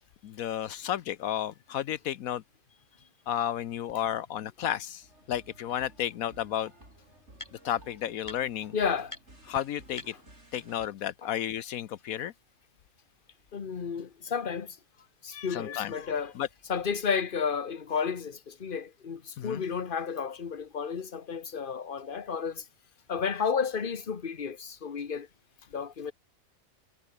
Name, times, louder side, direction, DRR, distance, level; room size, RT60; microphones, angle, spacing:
voice 1, 0.2-2.4 3.3-6.7 7.6-8.7 9.5-10.1 10.5-12.3 15.3-15.9 16.4-16.5 19.4-19.6, left 11 dB, 80° left, 1.2 m, -32 dB
sound 1, 3.9-4.0 4.6-4.7 6.0-6.1 6.3-7.8 8.2-8.7 9.1-9.2 9.5-9.6 9.9-10.9, left 2 dB, 20° left, 2.5 m, -47 dB
sound 2, 5.0-10.9, right 1 dB, 50° right, 6.9 m, -55 dB
voice 2, 8.7-9.1 11.2-11.3 13.5-14.8 15.2-16.3 16.7-22.6 23.1-25.3 25.7-26.1, left 6 dB, 40° left, 1.3 m, -32 dB
omnidirectional pair, 1.5 m